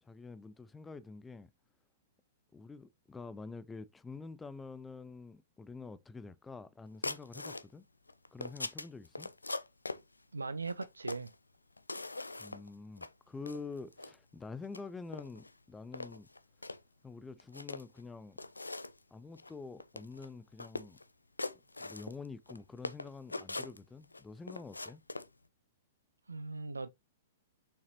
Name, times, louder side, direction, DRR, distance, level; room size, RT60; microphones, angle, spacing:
voice 1, 0.0-1.5 2.5-7.9 8.3-9.3 12.4-16.3 17.0-18.4 19.1-21.0 21.8-25.0, left 4 dB, 10° left, 0.5 m, -47 dB
sound 1, 7.0-7.7 8.1-10.0 10.7-11.3 11.8-12.7 13.0-13.1 13.5-14.1 14.6-14.8 15.1-15.5 15.9-16.8 17.4-18.0 18.4-19.0 19.4-19.5 19.8-20.3 20.6-21.0 21.4-22.6 22.8-24.2 24.5-25.3, left 2 dB, 90° left, 0.5 m, -41 dB
voice 2, 10.3-11.3 26.3-26.9, right 3 dB, 85° right, 0.4 m, -39 dB
6.6 x 5.8 x 2.8 m
figure-of-eight pair, 110°, 0 cm